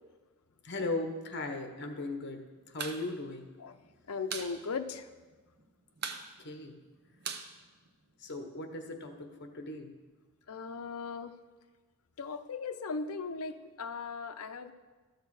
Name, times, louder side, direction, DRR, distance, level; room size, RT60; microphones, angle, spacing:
voice 1, 0.6-3.5 6.4-6.8 8.2-9.9, left 2 dB, 50° left, 5 dB, 1.1 m, -38 dB
sound 1, 2.6-3.0 3.3-3.4 3.7-4.5 4.9-5.0 5.2-5.6 6.0-8.3, right 6 dB, 45° right, 0.7 m, -40 dB
voice 2, 4.1-5.1 10.5-11.3 12.2-14.7, left 4 dB, 75° left, 9 dB, 0.6 m, -38 dB
13.0 x 6.6 x 4.8 m, 1.3 s
head